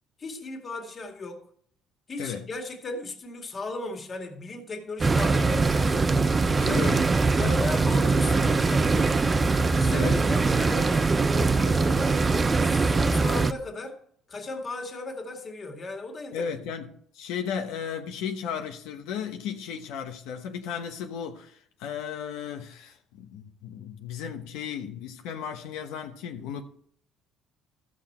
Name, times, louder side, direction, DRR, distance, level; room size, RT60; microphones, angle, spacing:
voice 1, 0.2-1.4 2.1-6.1 6.6-6.9 7.4-9.2 9.8-14.0 14.3-16.5, left 3 dB, 35° left, 2.1 m, -36 dB
sound 1, 5.0-13.5, right 3 dB, 25° right, 0.6 m, -22 dB
voice 2, 6.5-7.1 7.4-7.6 9.9-10.2 16.3-26.6, left 7 dB, 90° left, 1.1 m, -35 dB
14.5 x 6.4 x 4.4 m
cardioid pair, 120°, 0 cm